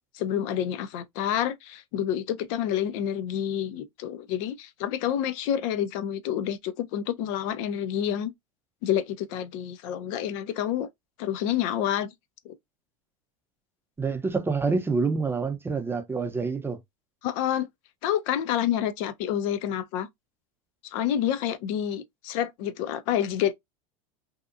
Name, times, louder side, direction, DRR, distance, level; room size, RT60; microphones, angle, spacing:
voice 1, 0.1-8.3 8.8-10.9 11.2-12.1 12.5-12.6 17.2-17.7 18.0-20.1 20.9-23.5, left 10 dB, 65° left, 0.5 m, -28 dB
voice 2, 14.0-16.8, right 4 dB, 15° right, 0.6 m, -27 dB
2.7 x 2.3 x 2.4 m
hypercardioid pair, 105°, 18 cm